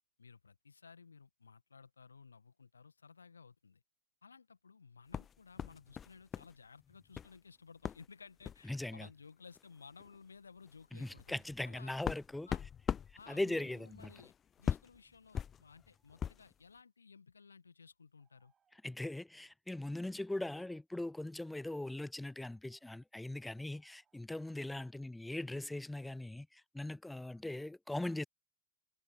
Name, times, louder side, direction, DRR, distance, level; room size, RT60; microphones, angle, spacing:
voice 1, 0.2-3.8 4.2-12.0 12.5-12.6 13.2-14.3 14.6-18.5, left 5 dB, 75° left, 1.9 m, -57 dB
sound 1, 5.1-6.5 6.8-7.4 7.8-8.1 8.4-8.7 9.6-9.7 10.0-10.2 10.7-16.5, left 8 dB, 25° left, 0.8 m, -41 dB
voice 2, 8.6-9.1 10.9-12.5 13.3-14.1 18.8-28.2, left 1 dB, 5° left, 0.5 m, -40 dB
sound 2, 15.8-16.4 18.2-18.8 20.2-20.3 20.9-21.8 22.7-22.9 23.3-24.2, right 7 dB, 20° right, 6.1 m, -82 dB
figure-of-eight pair, 90°, 0 cm